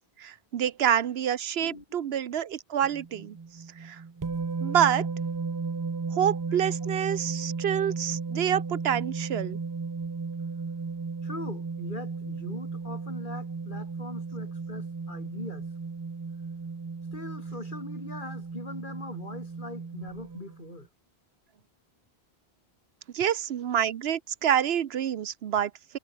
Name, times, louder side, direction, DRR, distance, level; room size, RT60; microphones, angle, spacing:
voice 1, 0.2-3.4 3.8-4.0 4.6-5.1 6.1-9.6 23.1-26.0, right 9 dB, 75° right, 1.0 m, -27 dB
voice 2, 1.6-2.2 11.2-15.7 17.1-20.9, left 2 dB, 50° left, 3.5 m, -41 dB
sound 1, 2.8-20.7, right 4 dB, 30° right, 0.4 m, -35 dB
omnidirectional pair, 1.1 m